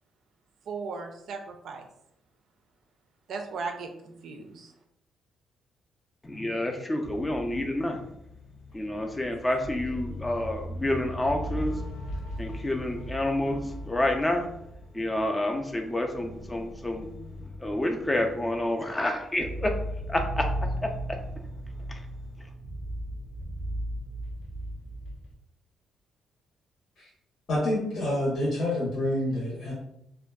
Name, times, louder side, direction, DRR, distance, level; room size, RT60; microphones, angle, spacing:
voice 1, 0.7-1.9 3.3-4.7, right 4 dB, 70° right, 4 dB, 0.4 m, -37 dB
voice 2, 6.2-8.1 8.7-11.8 12.4-14.5 14.9-17.1 17.4-19.8 20.1-21.2 21.9-22.0, left 1 dB, 20° left, 3 dB, 0.4 m, -29 dB
sound 1, 7.0-25.3, equal, 90° left, 0.4 m, -37 dB
voice 3, 27.5-29.7, left 1 dB, 60° left, -6 dB, 0.8 m, -27 dB
2.5 x 2.2 x 2.3 m, 0.79 s
cardioid pair, 90°, 0 cm